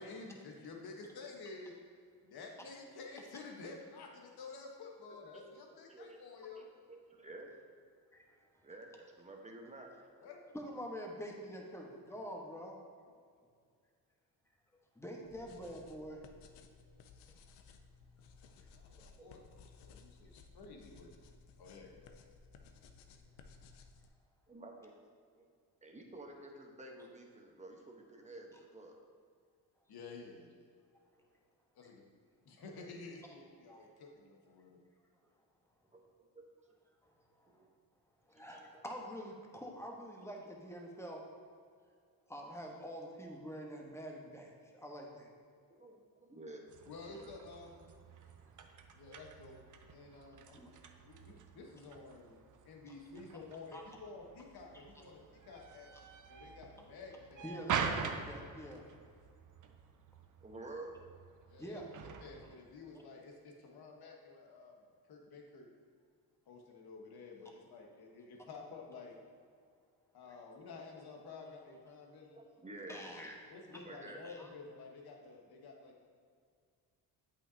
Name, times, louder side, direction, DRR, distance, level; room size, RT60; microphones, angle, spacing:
voice 1, 0.0-1.8 2.2-6.6 10.2-10.4 18.7-19.4 19.8-21.1 21.6-22.1 22.5-22.7 29.9-30.5 31.7-32.0 32.4-34.8 46.9-47.9 48.9-49.6 49.9-50.6 51.0-52.4 52.6-55.9 56.3-57.6 61.5-61.8 62.2-65.7 66.5-69.2 70.1-72.4 73.5-76.1, left 3 dB, 65° left, 1 dB, 1.3 m, -51 dB
voice 2, 6.5-7.5 8.6-9.9 19.2-19.3 24.5-25.0 25.4-25.5 25.8-29.0 35.9-36.5 37.4-37.7 38.3-38.8 45.7-46.7 47.2-47.3 60.4-60.9 72.3-73.2 73.7-74.2, right 2 dB, 15° right, 1 dB, 1.1 m, -51 dB
voice 3, 8.1-8.6 10.5-12.8 14.9-16.2 17.3-17.4 33.7-33.9 37.0-37.7 38.3-41.2 42.3-45.3 49.1-49.2 50.6-50.7 53.7-53.8 54.9-55.0 57.4-58.8 61.6-62.0 72.9-73.4 73.7-73.8 74.2-74.5, equal, 5° left, 0 dB, 1.2 m, -46 dB
sound 1, 15.2-24.1, left 4 dB, 85° left, 0.6 m, -59 dB
sound 2, 46.7-62.6, right 6 dB, 50° right, 0.7 m, -45 dB
8.0 x 5.8 x 2.8 m, 2.2 s
cardioid pair, 75°, 41 cm